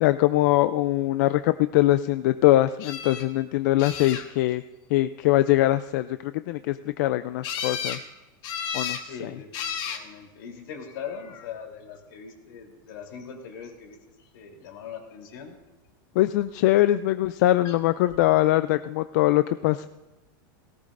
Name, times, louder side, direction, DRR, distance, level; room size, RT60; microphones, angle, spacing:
voice 1, 0.0-4.6 4.9-8.0 8.7-9.4 16.2-19.9, left 15 dB, 50° left, 12 dB, 0.4 m, -22 dB
sound 1, 2.8-3.2 3.8-4.5 7.4-8.0 8.4-9.0 9.5-10.0 10.9-11.4 17.6-17.8 18.1-18.2, left 7 dB, 35° left, 1.3 m, -33 dB
voice 2, 9.1-14.0 14.3-15.5, left 7 dB, 70° left, 2 dB, 3.4 m, -41 dB
18.0 x 17.5 x 2.6 m, 1.1 s
supercardioid pair, 165°, 12 cm